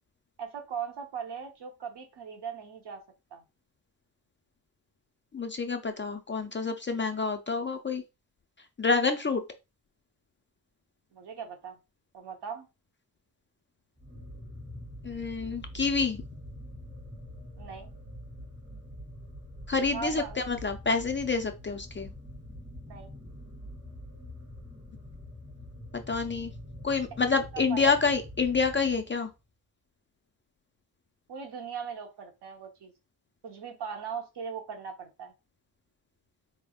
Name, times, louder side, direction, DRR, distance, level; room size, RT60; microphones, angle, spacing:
voice 1, 0.4-3.0 3.3-3.4 11.1-11.8 12.1-12.7 17.6-17.9 19.9-20.5 22.9-23.1 27.5-28.0 31.3-32.9 33.4-35.3, right 6 dB, 70° right, 3 dB, 1.0 m, -39 dB
voice 2, 5.3-8.0 8.8-9.4 15.0-16.2 19.7-22.1 25.9-26.5 26.8-29.3, left 4 dB, 30° left, 6 dB, 0.3 m, -28 dB
sound 1, 14.0-29.3, left 1 dB, 15° right, 0.9 m, -45 dB
4.2 x 3.4 x 2.3 m, 0.26 s
wide cardioid pair, 175°, 42 cm